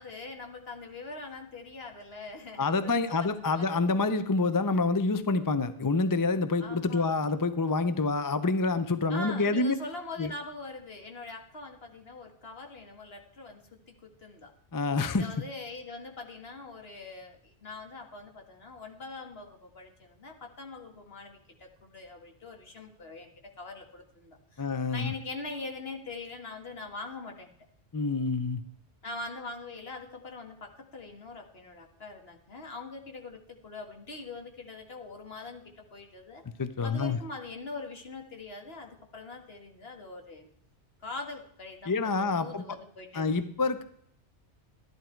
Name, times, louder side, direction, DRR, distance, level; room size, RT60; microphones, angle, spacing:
voice 1, 0.0-3.3 3.5-3.7 6.6-7.3 9.1-14.5 15.1-27.5 29.0-36.4 36.8-40.5 41.0-43.3, left 3 dB, 60° left, 3 dB, 1.9 m, -43 dB
voice 2, 2.6-9.7 10.2-10.3 14.7-15.3 24.6-25.1 27.9-28.6 36.6-37.2 41.9-42.6 43.1-43.8, left 3 dB, 25° left, 12 dB, 0.5 m, -27 dB
13.0 x 11.0 x 4.5 m, 0.69 s
omnidirectional pair, 1.2 m